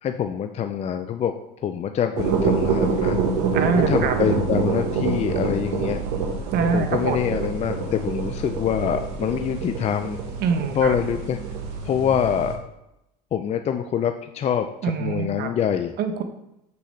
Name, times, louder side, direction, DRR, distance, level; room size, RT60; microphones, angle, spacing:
voice 1, 0.0-3.2 3.7-6.0 6.7-10.2 10.7-11.4 11.8-12.6 13.3-15.9, left 8 dB, 30° left, 8 dB, 0.5 m, -25 dB
sound 1, 2.2-12.5, right 5 dB, 70° right, 1.5 m, -26 dB
voice 2, 3.5-4.1 6.5-7.3 10.4-10.9 14.8-15.5 16.0-16.2, right 6 dB, 50° right, 7 dB, 1.1 m, -24 dB
7.4 x 6.8 x 3.3 m, 0.87 s
hypercardioid pair, 85°, 21 cm